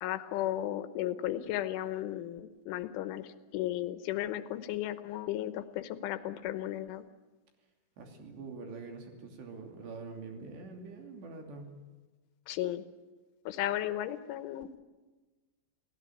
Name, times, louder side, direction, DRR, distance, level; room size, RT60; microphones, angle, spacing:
voice 1, 0.0-7.0 12.5-12.9 13.5-14.7, left 13 dB, 80° left, 11 dB, 3.4 m, -35 dB
voice 2, 8.0-11.7, right 4 dB, 65° right, 3 dB, 4.8 m, -45 dB
29.0 x 16.5 x 9.1 m, 1.2 s
omnidirectional pair, 5.5 m